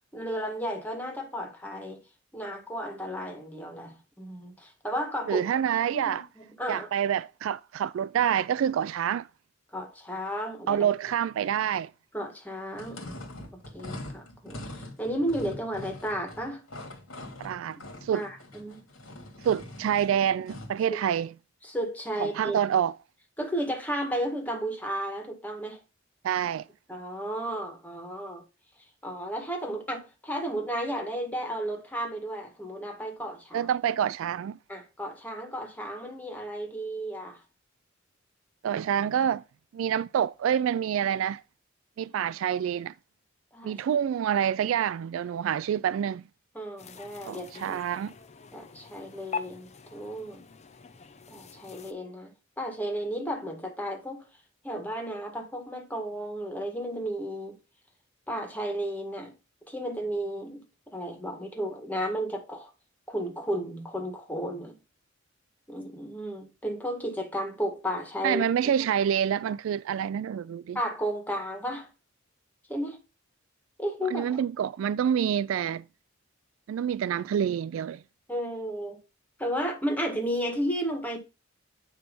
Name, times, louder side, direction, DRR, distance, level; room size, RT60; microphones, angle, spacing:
voice 1, 0.1-2.0 2.3-5.4 5.9-6.9 9.7-10.9 12.1-13.0 13.7-16.6 18.1-18.9 20.9-21.0 21.6-22.6 23.4-25.8 26.9-28.4 28.8-33.7 34.7-37.4 43.5-43.8 46.5-47.8 48.5-50.4 51.3-54.3 54.6-57.6 58.3-59.3 59.7-62.7 63.1-64.8 65.7-68.7 70.7-71.9 72.7-73.0 73.8-74.4 78.3-79.0 79.4-81.2, equal, 10° left, 1.9 m, -33 dB
voice 2, 5.3-6.3 6.7-9.3 10.7-11.9 17.4-18.2 19.4-21.3 22.2-23.0 26.2-26.7 33.5-34.6 38.6-39.4 39.7-41.4 42.0-42.9 43.6-46.2 47.2-48.1 68.2-70.8 74.1-75.8 76.7-78.0, right 9 dB, 70° right, 0.3 m, -27 dB
sound 1, 12.7-20.8, left 1 dB, 90° left, 2.4 m, -43 dB
sound 2, 46.8-51.9, left 5 dB, 35° left, 0.6 m, -43 dB
9.7 x 3.3 x 5.4 m
head